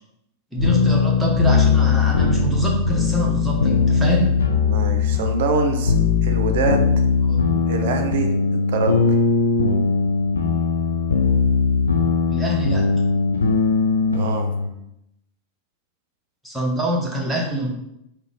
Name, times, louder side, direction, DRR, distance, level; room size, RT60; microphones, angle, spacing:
voice 1, 0.5-4.3 7.3-7.4 12.3-12.8 16.4-17.7, right 1 dB, 5° right, -3 dB, 1.0 m, -25 dB
sound 1, 0.6-14.7, left 4 dB, 75° left, 0.5 m, -19 dB
voice 2, 4.6-5.9 6.2-6.9 7.7-9.0 14.1-14.5, right 4 dB, 55° right, 5 dB, 0.5 m, -24 dB
3.7 x 2.8 x 3.5 m, 0.82 s
figure-of-eight pair, 90°, 0 cm